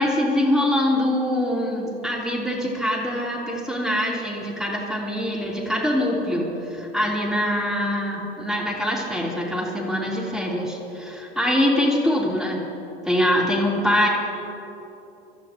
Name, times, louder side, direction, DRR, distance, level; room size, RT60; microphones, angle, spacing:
voice 1, 0.0-12.6 13.0-14.1, left 1 dB, ahead, -5 dB, 3.8 m, -23 dB
27.0 x 13.5 x 3.1 m, 2.9 s
figure-of-eight pair, 75°, 30 cm